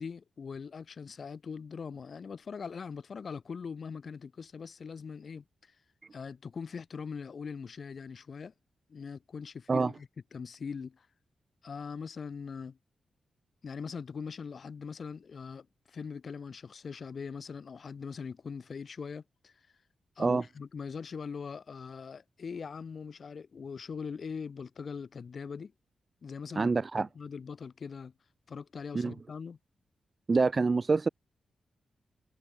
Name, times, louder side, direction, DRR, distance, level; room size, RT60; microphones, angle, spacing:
voice 1, 0.0-5.7 6.1-8.5 8.9-11.1 11.6-12.8 13.6-19.5 20.2-25.7 26.2-28.1 28.5-29.6, left 5 dB, 50° left, 7.3 m, -41 dB
voice 2, 26.6-27.1 28.9-29.1 30.3-31.1, right 4 dB, 35° right, 0.7 m, -26 dB
wide cardioid pair, 115°, 0 cm